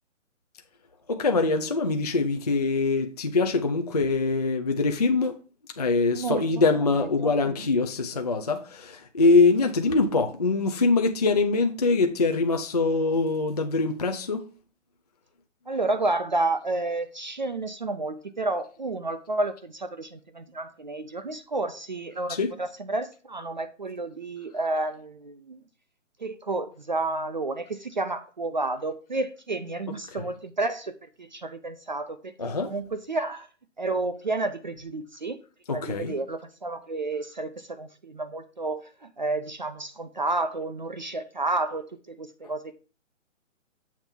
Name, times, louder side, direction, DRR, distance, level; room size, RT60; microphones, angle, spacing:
voice 1, 1.1-5.4 5.8-14.5 22.3-22.5 29.9-30.2 32.4-32.8 35.7-36.1, left 3 dB, 35° left, 0.4 m, -23 dB
voice 2, 6.1-6.5 7.0-7.3 15.7-25.6 26.2-32.3 32.6-33.5 33.8-35.4 35.7-42.8, right 2 dB, 40° right, 0.4 m, -31 dB
7.2 x 3.4 x 5.7 m
hypercardioid pair, 160°, 38 cm